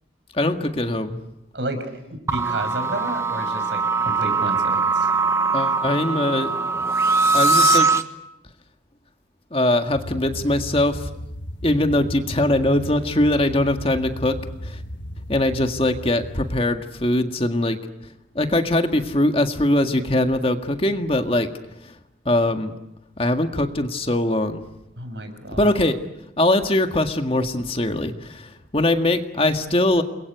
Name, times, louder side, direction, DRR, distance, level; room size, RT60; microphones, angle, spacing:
voice 1, 0.3-1.2 5.5-6.5 7.3-7.9 9.5-11.1 11.6-14.4 14.6-14.8 15.3-17.8 18.4-21.5 21.8-21.9 22.3-22.7 23.2-24.6 25.5-26.0 26.4-30.0, left 1 dB, 30° left, 6 dB, 1.8 m, -21 dB
voice 2, 1.5-5.1 25.0-25.7, right 1 dB, 75° right, 8 dB, 6.1 m, -31 dB
sound 1, 2.3-8.0, right 4 dB, 15° right, 1.2 m, -21 dB
sound 2, 6.8-7.8, left 12 dB, 55° left, 2.0 m, -28 dB
sound 3, 9.9-16.6, equal, 80° left, 1.5 m, -35 dB
30.0 x 22.0 x 8.2 m, 0.89 s
head